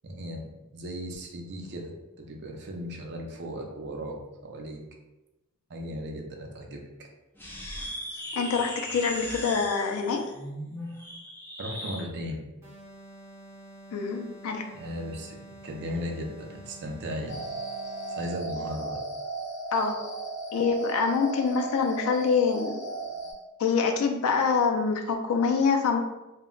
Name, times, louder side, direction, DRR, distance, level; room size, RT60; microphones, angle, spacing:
voice 1, 0.0-0.4 0.7-4.8 5.7-7.1 11.6-12.4 14.7-17.4 18.2-19.0, equal, 50° right, 1 dB, 0.5 m, -36 dB
sound 1, 7.4-12.1, equal, 10° left, 0.4 m, -38 dB
voice 2, 8.3-10.2 13.9-14.7 19.7-20.0 20.5-22.8 23.6-26.0, left 5 dB, 75° left, 4 dB, 0.4 m, -25 dB
sound 2, 12.6-18.5, right 1 dB, 15° right, 0.9 m, -48 dB
sound 3, 17.3-23.3, right 3 dB, 55° left, 0.8 m, -36 dB
2.1 x 2.1 x 3.6 m, 1.0 s
head